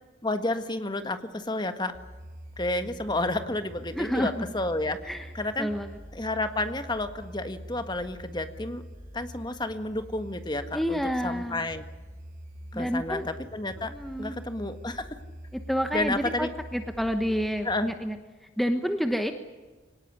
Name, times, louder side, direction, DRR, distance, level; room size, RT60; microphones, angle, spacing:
voice 1, 0.2-1.9 2.6-5.0 5.3-5.7 6.1-8.8 9.1-11.8 12.7-13.9 14.2-15.2 15.9-16.5 17.6-17.9, left 2 dB, 25° left, 8 dB, 1.6 m, -31 dB
sound 1, 1.9-17.9, equal, 40° right, 3.7 m, -45 dB
voice 2, 3.9-4.5 5.0-5.3 5.6-5.9 10.7-11.7 12.7-13.3 13.9-14.3 15.5-18.2 18.6-19.3, equal, ahead, 6 dB, 1.1 m, -29 dB
24.5 x 18.5 x 9.8 m, 1.3 s
head